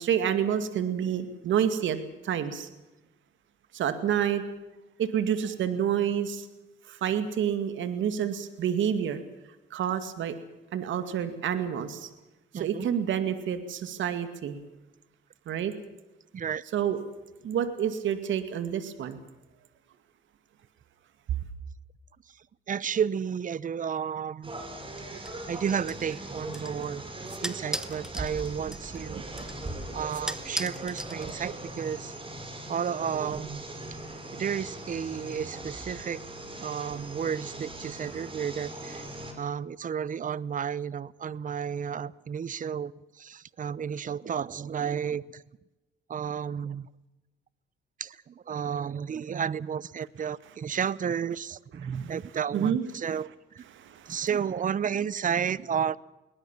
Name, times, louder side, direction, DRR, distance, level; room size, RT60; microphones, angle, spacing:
voice 1, 0.0-2.0 2.2-2.7 3.7-4.4 5.0-6.5 6.8-9.2 9.7-10.4 10.7-12.1 12.5-14.6 15.5-15.7 16.7-17.0 17.4-19.2 51.8-52.1 52.5-52.8 53.7-54.3, right 9 dB, 75° right, 10 dB, 2.3 m, -28 dB
voice 2, 12.5-12.9 16.3-16.6 22.7-24.5 25.5-27.0 27.4-29.5 29.9-32.1 32.7-33.6 34.3-36.2 36.6-39.0 39.4-42.9 43.2-45.4 46.1-46.9 48.0-53.3 53.5-53.6 54.1-56.0, right 7 dB, 40° right, 21 dB, 0.9 m, -32 dB
sound 1, 24.4-39.3, right 2 dB, 25° right, 6.5 m, -40 dB
sound 2, 25.2-31.7, equal, 5° right, 1.3 m, -40 dB
22.0 x 19.5 x 7.4 m, 1.0 s
cardioid pair, 90°, 20 cm